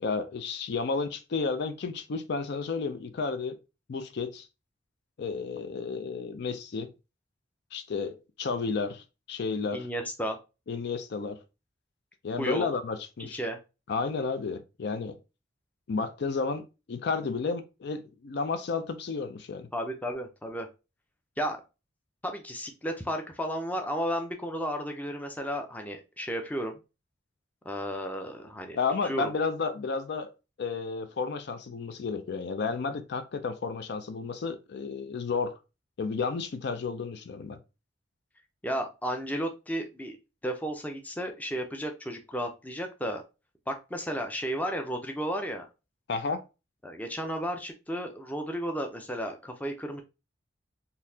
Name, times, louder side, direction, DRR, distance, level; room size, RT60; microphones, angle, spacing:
voice 1, 0.0-3.6 3.9-4.5 5.2-6.9 7.7-9.9 10.7-11.4 12.2-13.4 13.9-15.2 15.9-19.7 28.7-30.3 30.6-35.5 36.0-37.6 46.1-46.4, left 4 dB, 60° left, 0.4 m, -32 dB
voice 2, 9.7-10.4 12.4-12.7 13.3-13.6 19.7-20.7 21.4-21.6 22.2-26.8 27.6-28.8 29.0-29.3 38.6-40.2 40.4-43.2 43.7-45.7 46.8-50.0, equal, 10° left, 0.5 m, -33 dB
3.9 x 2.7 x 2.7 m
head